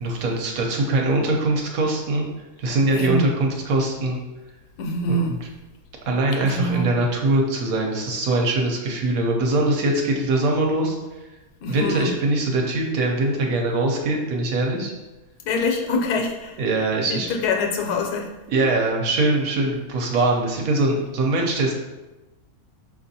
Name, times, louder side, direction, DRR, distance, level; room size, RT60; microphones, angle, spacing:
voice 1, 0.0-2.3 2.6-4.2 5.1-5.2 6.1-11.0 11.7-14.9 16.6-17.3 18.5-21.7, right 2 dB, 70° right, 1 dB, 1.0 m, -22 dB
voice 2, 2.9-3.3 4.8-5.4 6.3-7.0 11.6-12.1 15.4-16.6 17.1-18.3, left 2 dB, 90° left, 2 dB, 1.2 m, -25 dB
5.0 x 2.8 x 2.7 m, 1.1 s
omnidirectional pair, 1.7 m